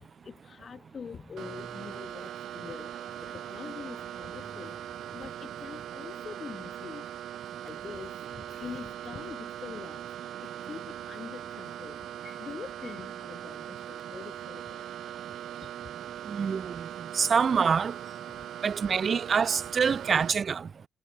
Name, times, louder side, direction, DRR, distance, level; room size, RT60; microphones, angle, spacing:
voice 1, 0.2-2.9 3.5-4.8 5.1-7.0 7.6-10.0 10.6-12.0 12.2-14.8, left 6 dB, 45° left, 1.2 m, -44 dB
sound 1, 0.8-6.5, left 1 dB, 5° left, 7.6 m, -56 dB
sound 2, 1.4-20.3, right 11 dB, 75° right, 1.1 m, -40 dB
voice 2, 16.3-16.9 17.1-18.0 18.6-20.7, right 6 dB, 45° right, 0.7 m, -26 dB
cardioid pair, 90°, 0 cm